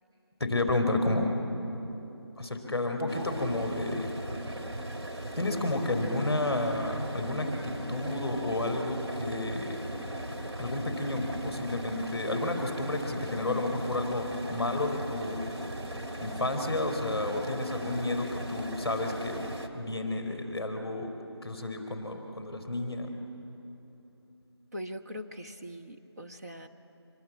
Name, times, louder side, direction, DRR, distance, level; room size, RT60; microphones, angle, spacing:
voice 1, 0.4-1.3 2.4-4.1 5.3-9.8 10.6-15.4 16.2-19.4 19.7-21.1 21.4-23.1, left 2 dB, ahead, 0 dB, 3.3 m, -31 dB
sound 1, 3.1-19.7, right 1 dB, 80° right, 2.5 m, -38 dB
voice 2, 24.7-26.7, equal, 35° right, 2 dB, 1.2 m, -41 dB
25.5 x 21.5 x 8.4 m, 3.0 s
figure-of-eight pair, 175°, 14 cm